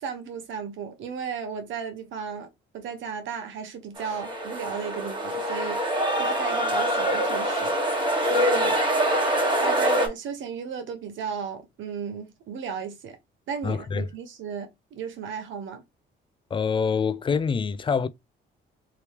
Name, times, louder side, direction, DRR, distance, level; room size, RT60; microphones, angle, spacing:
voice 1, 0.0-2.5 2.7-8.8 9.6-13.2 13.5-15.8, right 6 dB, 75° right, 0.9 m, -35 dB
sound 1, 4.0-10.1, right 1 dB, 25° right, 1.3 m, -24 dB
voice 2, 13.6-14.0 16.5-18.1, left 5 dB, 25° left, 0.4 m, -25 dB
3.0 x 2.8 x 3.3 m
cardioid pair, 90°, 20 cm